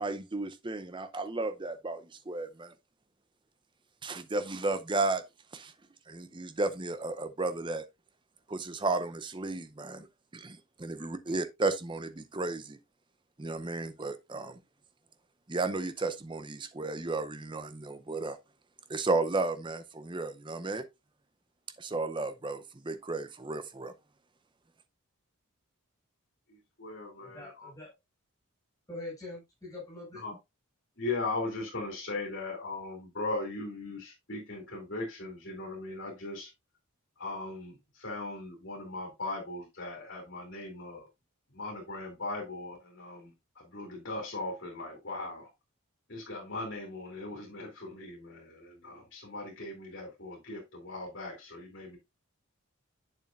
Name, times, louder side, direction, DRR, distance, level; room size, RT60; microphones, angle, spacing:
voice 1, 0.0-2.7 4.0-5.2 5.5-5.7 6.1-7.8 8.5-10.1 10.3-12.8 13.4-14.5 15.5-18.4 18.9-20.8 21.8-23.9, right 3 dB, 20° right, 0.6 m, -33 dB
voice 2, 11.0-11.4 27.2-27.9 28.9-30.2, left 2 dB, 15° left, 5.1 m, -44 dB
voice 3, 26.5-27.7 30.1-30.3 31.0-36.5 37.2-41.1 41.5-45.5 46.1-52.0, left 2 dB, 55° left, 2.9 m, -39 dB
8.2 x 7.2 x 2.5 m
head